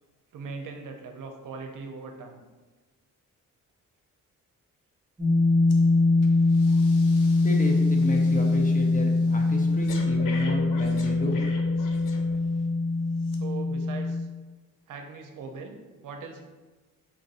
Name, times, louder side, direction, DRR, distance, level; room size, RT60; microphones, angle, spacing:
voice 1, 0.3-2.4 13.3-14.3 14.9-15.8 16.0-16.4, right 4 dB, 80° right, 4 dB, 0.7 m, -40 dB
sound 1, 5.2-14.2, left 3 dB, 15° right, 1.0 m, -23 dB
Breathing, 5.7-5.9 6.2-12.7 13.2-13.4, left 4 dB, 80° left, 0.7 m, -43 dB
voice 2, 7.4-11.4, equal, 25° left, 1 dB, 0.7 m, -32 dB
4.2 x 2.6 x 4.1 m, 1.3 s
cardioid pair, 110°, 32 cm